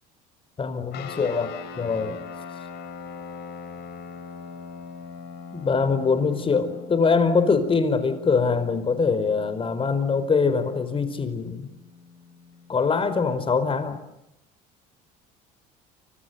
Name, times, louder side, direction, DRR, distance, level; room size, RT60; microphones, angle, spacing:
voice 1, 0.6-2.2 5.5-11.7 12.7-14.0, left 5 dB, 30° left, 11 dB, 4.6 m, -23 dB
sound 1, 0.9-12.7, left 5 dB, 65° left, 7.6 m, -41 dB
29.5 x 26.5 x 7.0 m, 0.86 s
cardioid pair, 115°, 19 cm